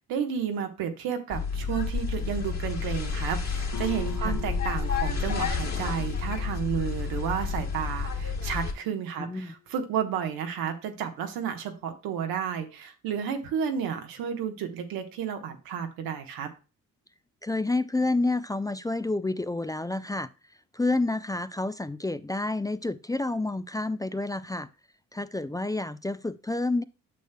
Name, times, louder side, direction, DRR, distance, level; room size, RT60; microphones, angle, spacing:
voice 1, 0.1-16.5, right 8 dB, 90° right, 1.2 m, -32 dB
sound 1, 1.3-8.7, left 5 dB, 50° left, 2.3 m, -30 dB
Guitar, 3.7-9.1, left 16 dB, 65° left, 0.9 m, -44 dB
voice 2, 9.2-9.5 17.4-20.3 20.7-24.7 25.1-26.8, left 2 dB, 10° left, 0.4 m, -29 dB
9.2 x 6.6 x 2.2 m
supercardioid pair, 60°, 34 cm